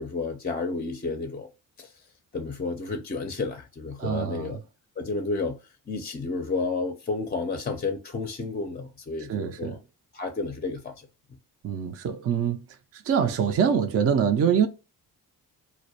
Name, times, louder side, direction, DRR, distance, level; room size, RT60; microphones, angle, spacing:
voice 1, 0.0-1.5 1.8-1.9 2.3-4.6 5.0-5.6 5.9-9.8 10.1-10.9, left 3 dB, 25° left, 0.4 m, -31 dB
voice 2, 4.0-4.6 9.2-9.8 11.6-12.6 12.9-14.7, right 7 dB, 40° right, 0.4 m, -25 dB
2.2 x 2.1 x 2.7 m
cardioid pair, 65°, 39 cm